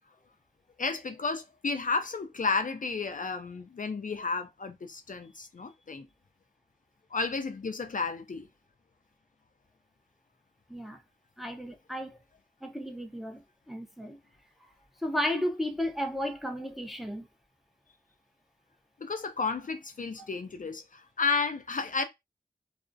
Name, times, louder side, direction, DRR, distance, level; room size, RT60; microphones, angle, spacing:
voice 1, 0.8-6.1 7.1-8.5 19.0-22.0, left 4 dB, 50° left, 0.4 m, -32 dB
voice 2, 11.4-12.2 12.6-13.4 13.7-14.2 15.0-17.3, left 1 dB, ahead, 0.6 m, -33 dB
2.4 x 2.0 x 2.6 m
cardioid pair, 40°, 17 cm